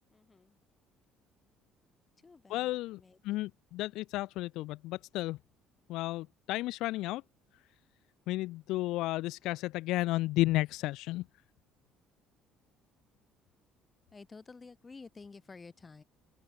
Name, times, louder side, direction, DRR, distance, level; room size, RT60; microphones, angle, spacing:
voice 1, 0.1-0.6 2.2-3.4 14.1-16.0, left 4 dB, 20° left, 3.9 m, -52 dB
voice 2, 2.5-3.0 3.2-5.4 5.9-7.2 8.3-11.2, left 18 dB, 75° left, 0.3 m, -32 dB
open air
cardioid pair, 140°, 0 cm